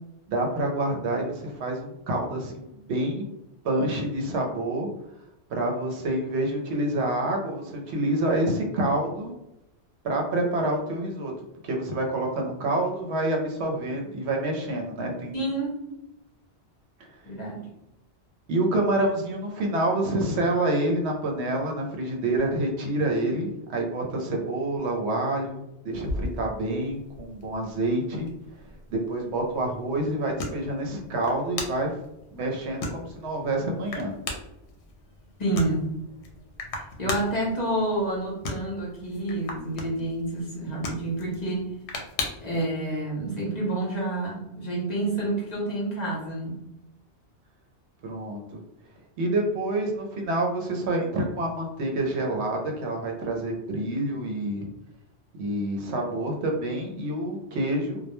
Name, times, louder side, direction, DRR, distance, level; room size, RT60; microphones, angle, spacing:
voice 1, 0.3-3.3 3.6-4.9 5.5-9.3 10.0-11.3 11.6-15.3 18.5-28.3 28.9-32.0 32.3-34.2 48.0-48.6 49.2-54.7 55.4-58.0, right 1 dB, 75° right, 1 dB, 0.9 m, -27 dB
voice 2, 15.3-15.8 17.2-17.7 35.4-35.9 37.0-41.8 42.4-46.6, right 1 dB, 45° left, -5 dB, 0.8 m, -28 dB
sound 1, 25.9-42.6, left 2 dB, 75° left, 0.8 m, -38 dB
2.3 x 2.1 x 2.9 m, 0.87 s
omnidirectional pair, 1.2 m